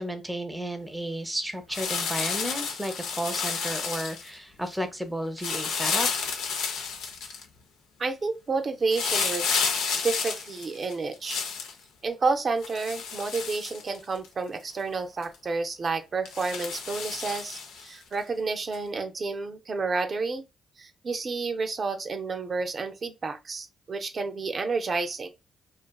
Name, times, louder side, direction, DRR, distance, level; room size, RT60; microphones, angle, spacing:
voice 1, 0.0-6.1, right 1 dB, 5° right, 0.6 m, -33 dB
sound 1, 1.7-4.3 5.4-7.4 8.9-11.7 12.6-14.3 14.7-14.8 15.2-15.3 16.2-17.9 18.7-18.8, left 5 dB, 85° left, 0.4 m, -31 dB
voice 2, 8.0-9.6 10.0-11.4 12.0-20.4 20.8-25.3, right 4 dB, 50° right, 0.5 m, -30 dB
2.5 x 2.4 x 2.2 m
supercardioid pair, 60°, 0 cm